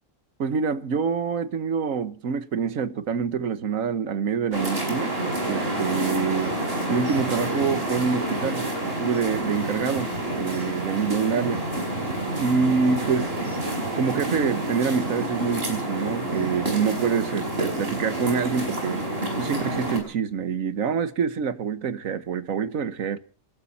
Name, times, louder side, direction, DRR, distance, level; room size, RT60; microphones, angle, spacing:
voice 1, 0.4-5.2 5.4-6.5 6.9-11.7 12.4-13.5 13.9-19.0 19.4-23.2, right 6 dB, 90° right, 1.5 m, -26 dB
sound 1, 4.5-20.0, right 1 dB, 45° right, 5.5 m, -28 dB
27.0 x 12.5 x 4.2 m
omnidirectional pair, 1.3 m